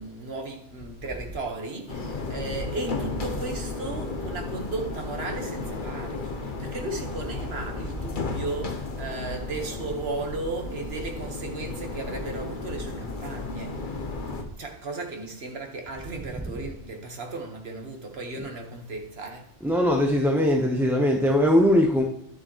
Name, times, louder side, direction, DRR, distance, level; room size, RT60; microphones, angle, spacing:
voice 1, 0.0-13.8 14.6-20.0, right 3 dB, 55° right, 1.7 m, -35 dB
sound 1, 1.9-14.4, left 3 dB, 45° left, 1.1 m, -34 dB
voice 2, 19.6-22.0, left 1 dB, ahead, 0.8 m, -20 dB
11.0 x 7.6 x 3.1 m
omnidirectional pair, 1.2 m